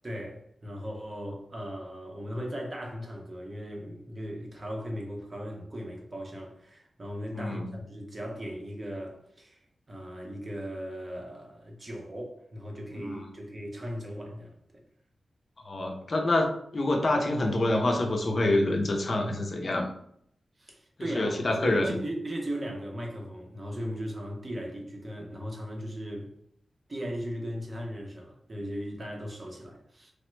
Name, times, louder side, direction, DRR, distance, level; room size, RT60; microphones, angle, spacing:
voice 1, 0.0-9.6 9.9-14.5 20.6-26.3 26.9-30.1, equal, 30° right, 0.6 m, -37 dB
voice 2, 7.3-7.7 12.9-13.2 15.6-19.9 21.1-22.0, left 2 dB, 40° left, 0.5 m, -27 dB
3.1 x 2.1 x 3.1 m
wide cardioid pair, 145°, 0 cm